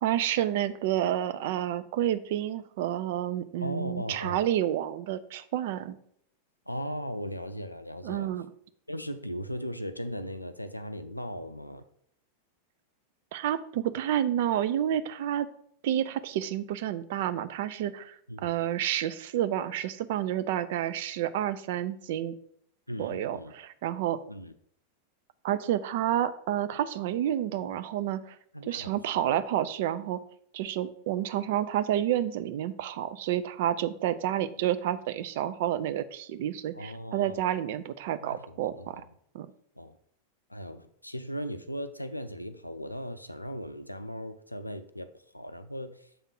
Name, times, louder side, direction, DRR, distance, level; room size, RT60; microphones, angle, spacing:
voice 1, 0.0-6.0 8.0-8.5 13.3-15.5 15.8-22.3 23.0-24.2 25.4-28.4 28.7-30.2 30.5-39.0 39.3-39.5, right 11 dB, 50° right, 12 dB, 0.4 m, -29 dB
voice 2, 3.6-4.4 6.7-8.3 8.9-11.8 18.3-18.5 22.9-23.5 24.3-24.5 28.5-29.4 36.7-37.5 38.2-39.0 39.8-40.0 40.5-45.1 45.3-46.1, equal, 85° left, 10 dB, 0.4 m, -38 dB
7.0 x 3.6 x 5.4 m, 0.67 s
figure-of-eight pair, 90°, 0 cm